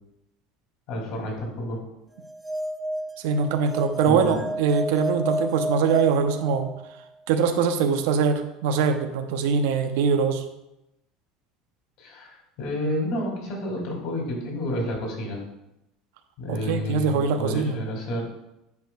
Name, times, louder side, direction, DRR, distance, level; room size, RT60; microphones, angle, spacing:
voice 1, 0.9-1.8 4.0-4.4 12.0-15.4 16.4-18.3, left 1 dB, 60° left, 0 dB, 2.3 m, -30 dB
sound 1, 2.2-7.0, right 1 dB, 5° right, 0.4 m, -31 dB
voice 2, 3.2-6.7 7.3-10.4 16.5-17.8, right 6 dB, 80° right, 8 dB, 0.6 m, -23 dB
9.2 x 5.0 x 2.2 m, 0.88 s
cardioid pair, 145°, 0 cm